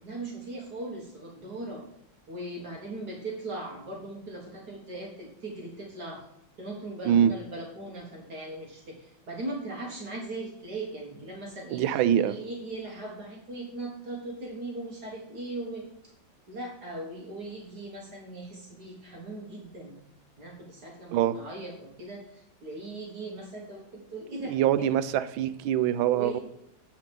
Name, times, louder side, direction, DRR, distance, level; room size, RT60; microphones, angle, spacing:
voice 1, 0.0-1.8 2.3-6.2 6.6-15.9 16.5-20.0 20.4-24.9 26.1-26.4, right 2 dB, 55° right, -1 dB, 2.0 m, -39 dB
voice 2, 11.7-12.3 21.1-21.4 24.5-26.4, right 10 dB, 85° right, 13 dB, 1.4 m, -24 dB
8.4 x 5.1 x 5.3 m, 0.80 s
omnidirectional pair, 2.1 m